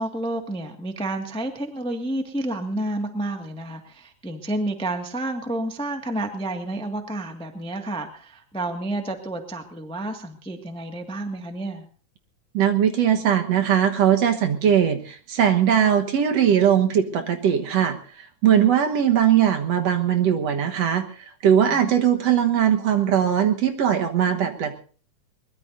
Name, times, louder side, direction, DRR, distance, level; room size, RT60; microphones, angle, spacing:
voice 1, 0.0-11.8 21.7-21.9, right 1 dB, 5° left, 4 dB, 1.0 m, -30 dB
voice 2, 12.5-18.0 18.4-21.1 21.4-24.7, right 9 dB, 65° right, 5 dB, 2.3 m, -20 dB
22.5 x 21.0 x 2.7 m, 0.40 s
omnidirectional pair, 3.3 m